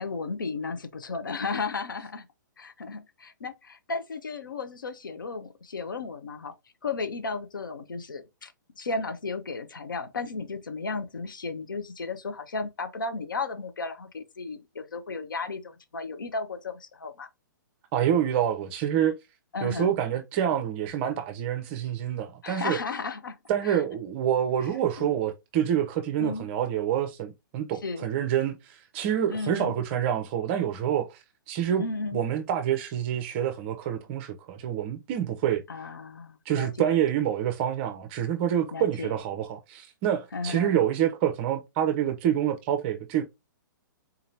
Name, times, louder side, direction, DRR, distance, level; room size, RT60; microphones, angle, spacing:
voice 1, 0.0-2.2 2.6-6.5 6.8-17.3 19.5-19.9 22.4-23.4 23.6-23.8 25.0-25.1 26.2-26.5 27.8-28.1 29.3-29.7 31.8-32.2 35.7-36.9 38.7-39.1 40.3-40.8, left 4 dB, 75° left, 0.7 m, -34 dB
voice 2, 17.9-19.1 19.6-22.8 23.5-31.8 32.1-35.6 36.5-43.2, right 10 dB, 35° right, 0.5 m, -27 dB
3.9 x 2.8 x 2.7 m
figure-of-eight pair, 120°, 11 cm